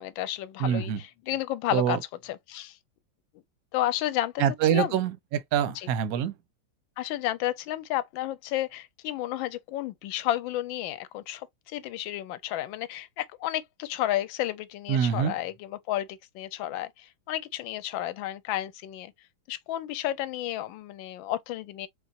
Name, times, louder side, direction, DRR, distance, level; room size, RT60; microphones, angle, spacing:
voice 1, 0.0-2.0 2.3-2.7 3.7-4.4 4.7-4.9 7.0-11.4 11.7-16.1 16.3-16.9 17.3-19.1 19.5-21.9, left 13 dB, 75° left, 1.3 m, -31 dB
voice 2, 0.6-1.0 1.7-2.0 4.4-6.3 14.9-15.3, right 9 dB, 65° right, 0.9 m, -25 dB
4.4 x 3.6 x 2.6 m
omnidirectional pair, 2.3 m